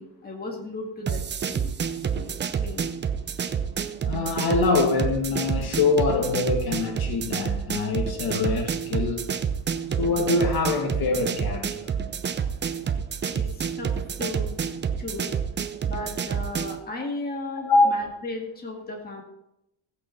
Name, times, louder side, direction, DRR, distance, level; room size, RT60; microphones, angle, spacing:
voice 1, 0.0-1.7 2.1-2.3 2.6-2.9 13.3-13.9 14.2-14.5 15.0-15.3 15.8-19.2, left 2 dB, 20° left, 0 dB, 2.0 m, -35 dB
sound 1, 1.1-16.8, right 7 dB, 25° right, 0.5 m, -29 dB
voice 2, 4.0-9.3 10.0-11.8 17.6-17.9, left 3 dB, 45° left, 2 dB, 1.9 m, -24 dB
15.0 x 8.6 x 4.5 m, 0.84 s
cardioid pair, 160°, 49 cm